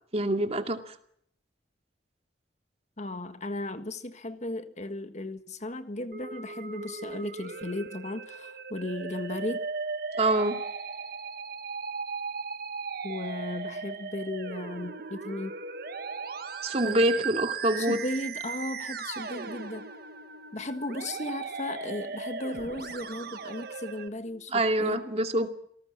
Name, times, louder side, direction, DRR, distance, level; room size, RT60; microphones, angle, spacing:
voice 1, 0.1-0.9 10.2-10.6 16.6-18.0 24.5-25.5, right 1 dB, 35° right, 6 dB, 2.5 m, -25 dB
voice 2, 3.0-9.7 13.0-15.6 16.9-17.2 17.8-19.9 20.5-25.0, left 1 dB, 40° left, 9 dB, 1.6 m, -36 dB
Musical instrument, 6.1-24.1, right 5 dB, 60° right, 1.7 m, -37 dB
28.5 x 18.5 x 7.5 m, 0.68 s
head